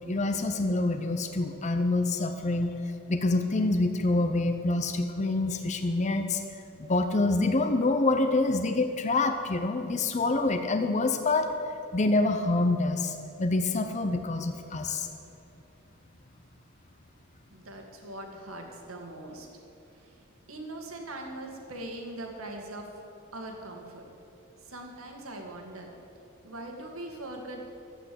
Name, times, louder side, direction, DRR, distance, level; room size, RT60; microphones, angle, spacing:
voice 1, 0.1-2.8 3.1-6.4 6.8-11.5 11.9-15.1, left 2 dB, 35° left, 6 dB, 0.7 m, -26 dB
voice 2, 17.5-19.5 19.9-22.9 23.3-24.0 24.6-25.9 26.4-27.6, right 1 dB, 80° right, 2 dB, 1.9 m, -41 dB
12.5 x 8.5 x 7.7 m, 2.7 s
head